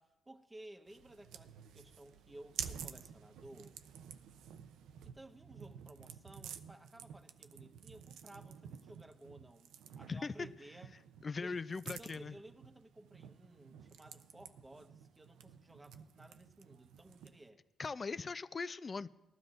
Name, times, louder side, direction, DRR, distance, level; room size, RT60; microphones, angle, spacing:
voice 1, 0.0-3.8 5.0-11.0 11.4-11.6 11.9-17.6, right 1 dB, 15° right, 6 dB, 1.1 m, -56 dB
sound 1, 0.9-17.5, right 8 dB, 85° right, 0.6 m, -51 dB
voice 2, 11.2-12.3 17.8-19.1, left 4 dB, 35° left, 15 dB, 0.4 m, -40 dB
19.5 x 12.5 x 2.5 m, 1.0 s
cardioid pair, 90°, 0 cm